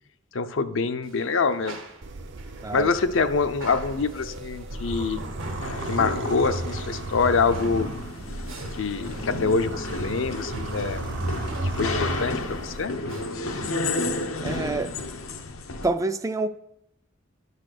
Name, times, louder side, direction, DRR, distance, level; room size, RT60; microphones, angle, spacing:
voice 1, 0.3-1.8 2.7-5.2 5.9-8.0 8.8-11.0 11.6-12.9, left 4 dB, 70° left, 10 dB, 0.6 m, -25 dB
sound 1, 1.0-13.8, right 1 dB, 80° right, 1.6 m, -42 dB
sound 2, 2.0-12.9, right 2 dB, 60° right, 0.6 m, -35 dB
sound 3, 5.6-15.9, left 2 dB, 90° left, 0.9 m, -32 dB
voice 2, 14.4-14.9 15.8-16.5, right 3 dB, 15° right, 10 dB, 0.3 m, -27 dB
11.0 x 4.1 x 6.6 m, 0.80 s
head